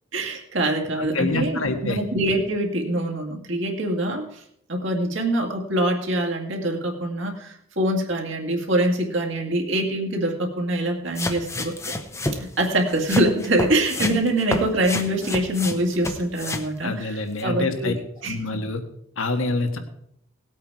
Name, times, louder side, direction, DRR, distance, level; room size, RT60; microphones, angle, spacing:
voice 1, 0.1-4.4 4.7-11.9 12.3-18.3, right 1 dB, 60° right, 1 dB, 2.1 m, -24 dB
voice 2, 1.0-2.0 16.8-17.9 18.2-18.8 19.2-19.8, left 2 dB, 75° left, 7 dB, 1.6 m, -26 dB
sound 1, 11.2-16.7 17.4-17.5, left 2 dB, 15° left, 0.8 m, -29 dB
18.0 x 8.4 x 4.7 m, 0.73 s
head